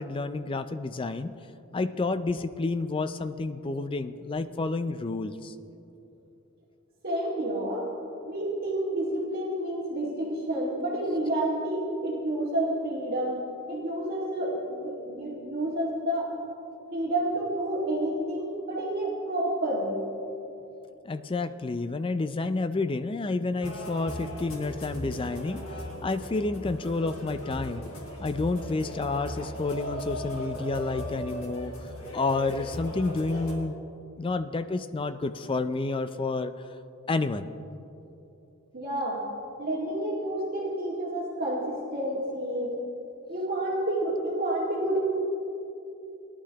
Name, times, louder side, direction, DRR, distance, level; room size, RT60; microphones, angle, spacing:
voice 1, 0.0-1.3 1.7-5.5 21.0-25.6 26.0-27.9 28.2-31.7 32.1-33.8 34.2-36.5 37.1-37.5, left 3 dB, 25° left, 11 dB, 0.4 m, -30 dB
voice 2, 7.0-7.9 8.2-16.3 16.9-20.1 38.7-39.2 39.6-42.7 43.3-45.0, right 1 dB, 45° right, -4 dB, 1.9 m, -29 dB
sound 1, 23.6-33.5, equal, 75° left, 2.1 m, -38 dB
19.0 x 11.5 x 2.9 m, 2.9 s
head